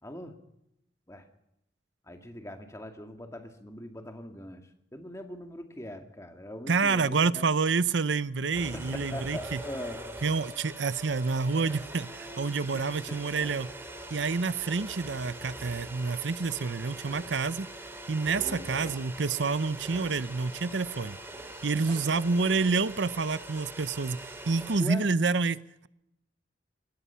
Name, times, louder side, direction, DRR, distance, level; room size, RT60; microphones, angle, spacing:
voice 1, 0.0-0.3 1.1-1.3 2.0-7.4 8.7-10.0 12.7-12.8 13.1-13.4 18.4-18.9 21.9-22.0 24.8-25.1, left 1 dB, 15° left, 5 dB, 2.1 m, -41 dB
voice 2, 6.7-9.6 10.2-13.7 14.1-17.7 18.1-21.2 21.6-25.6, right 4 dB, 75° right, 16 dB, 0.7 m, -28 dB
sound 1, 8.5-24.8, right 1 dB, 15° right, 2.9 m, -43 dB
24.5 x 18.5 x 5.7 m, 0.81 s
head